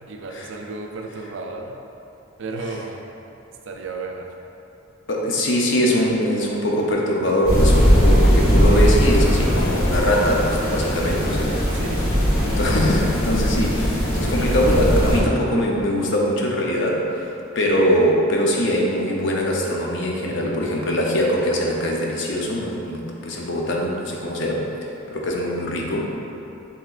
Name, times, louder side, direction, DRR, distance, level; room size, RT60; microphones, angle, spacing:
voice 1, 0.0-1.8 2.4-3.0 3.7-4.3 11.7-12.1, right 3 dB, 65° right, 2 dB, 0.4 m, -33 dB
voice 2, 5.1-11.7 12.4-17.1 17.6-24.7 25.1-26.2, equal, 60° left, -2 dB, 0.6 m, -22 dB
sound 1, 7.5-15.2, equal, 85° left, 1.2 m, -19 dB
7.4 x 2.9 x 2.4 m, 2.9 s
head